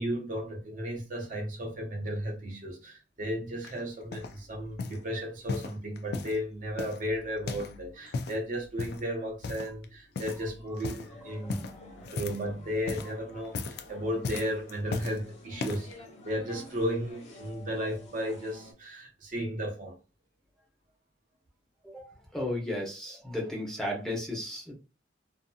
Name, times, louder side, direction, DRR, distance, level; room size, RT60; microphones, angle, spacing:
voice 1, 0.0-11.6 12.1-15.9 16.2-20.0, equal, 45° right, 0.7 m, -34 dB
sound 1, 3.6-4.4 4.8-5.0 5.5-6.4 6.8-8.4 8.8-9.1 9.4-9.8 10.1-10.5 10.7-11.1 11.5-12.5 12.8-13.1 13.4-13.9 14.2-15.2 15.6-15.9 16.6-16.7, left 4 dB, 60° left, 0.3 m, -36 dB
sound 2, 10.9-18.7, left 2 dB, 40° left, 0.7 m, -51 dB
voice 2, 21.8-24.7, left 1 dB, 5° left, 0.8 m, -34 dB
2.7 x 2.5 x 2.3 m
head